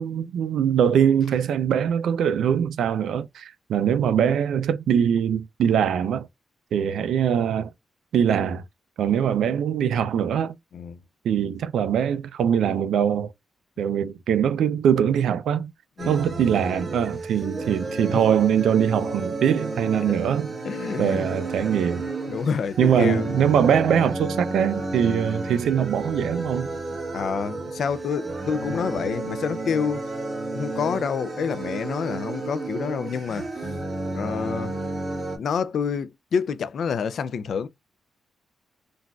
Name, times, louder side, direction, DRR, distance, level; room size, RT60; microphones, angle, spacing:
voice 1, 0.0-6.3 6.7-7.7 8.1-8.6 9.0-10.5 11.2-13.3 13.8-15.7 16.1-20.5 21.0-22.1 22.8-26.7, right 8 dB, 90° right, 0.3 m, -22 dB
sound 1, 16.0-35.4, right 2 dB, 35° right, 1.2 m, -32 dB
voice 2, 20.6-21.3 22.3-23.3 25.0-25.2 27.1-30.0 30.5-33.4 34.1-34.8 35.4-37.7, left 6 dB, 65° left, 0.3 m, -28 dB
3.9 x 2.4 x 2.2 m
cardioid pair, 115°, 0 cm